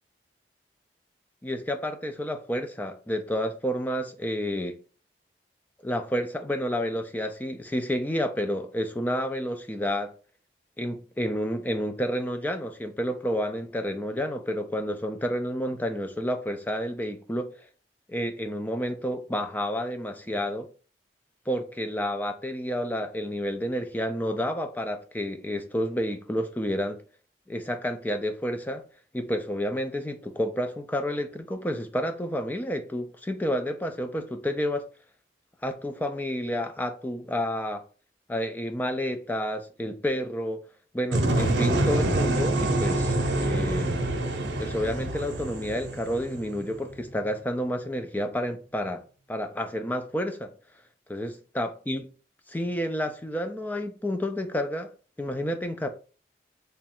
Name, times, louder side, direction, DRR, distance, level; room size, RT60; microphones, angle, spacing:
voice 1, 1.4-4.8 5.8-10.1 10.8-17.7 18.1-20.7 21.5-27.0 27.5-28.8 29.1-34.9 35.6-37.8 38.3-40.6 40.9-44.0 44.6-49.0 49.3-50.5 51.1-52.1 52.5-54.9 55.2-55.9, equal, 10° left, 0.3 m, -30 dB
sound 1, 41.1-47.0, right 1 dB, 85° right, 0.7 m, -26 dB
3.3 x 2.3 x 4.1 m
head